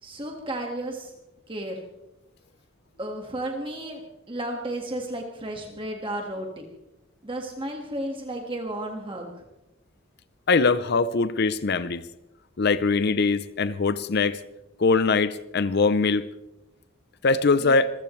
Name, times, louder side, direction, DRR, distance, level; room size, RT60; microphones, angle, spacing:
voice 1, 0.0-1.1 1.5-1.7 3.0-6.6 7.2-9.3 17.5-17.8, right 1 dB, 25° right, 2 dB, 1.7 m, -33 dB
voice 2, 10.5-12.0 12.6-14.4 14.8-16.2 17.2-17.9, left 4 dB, 55° left, 14 dB, 0.6 m, -22 dB
26.0 x 15.5 x 3.2 m, 0.93 s
head